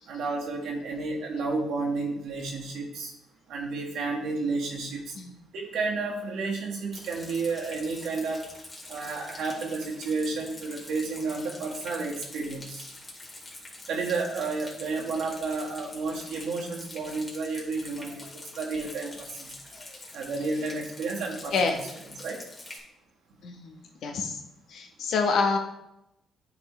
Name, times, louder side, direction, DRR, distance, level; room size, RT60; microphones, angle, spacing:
voice 1, 0.1-3.1 3.5-5.1 5.5-8.4 8.9-12.9 13.9-19.5 20.1-21.8 22.2-22.4, right 3 dB, 80° right, -1 dB, 1.6 m, -31 dB
Rain, 6.9-22.8, left 2 dB, 30° left, 2.1 m, -45 dB
voice 2, 23.4-24.4 24.7-25.6, left 4 dB, 70° left, 4 dB, 1.0 m, -27 dB
9.6 x 4.2 x 3.2 m, 0.85 s
cardioid pair, 90°, 0 cm